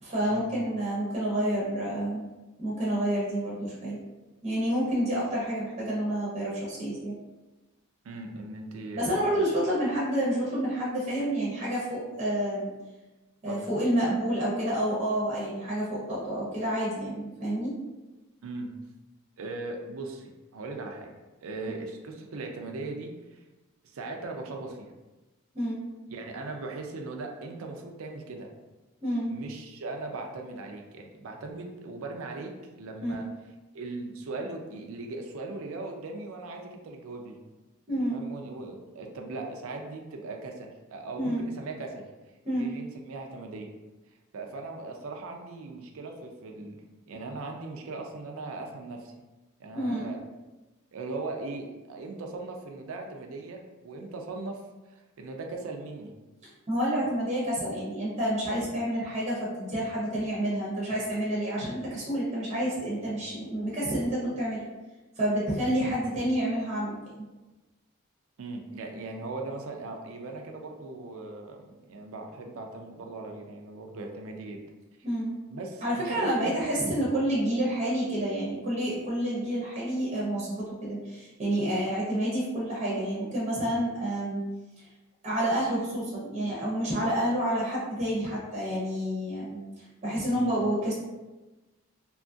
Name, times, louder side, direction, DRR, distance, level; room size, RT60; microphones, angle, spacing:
voice 1, 0.0-2.3 2.6-4.0 4.4-7.2 8.9-12.7 13.4-17.7 25.5-25.8 29.0-29.3 33.0-33.2 37.9-38.2 41.2-41.5 42.4-42.7 49.7-50.2 56.7-64.6 65.2-67.0 75.0-75.4 75.8-84.4 84.8-84.9 85.2-90.9, right 1 dB, 30° right, -7 dB, 0.6 m, -29 dB
voice 2, 8.0-9.4 13.5-13.6 18.4-18.7 19.4-21.1 21.4-23.4 23.8-24.9 26.1-28.5 29.3-32.5 32.8-33.3 33.7-37.4 38.1-42.0 42.5-43.7 44.3-46.8 47.1-49.1 49.6-50.2 50.9-56.1 65.8-65.9 68.4-74.6 75.5-76.6 90.3-90.5, right 3 dB, 70° right, 2 dB, 0.4 m, -39 dB
2.8 x 2.3 x 2.5 m, 1.1 s
head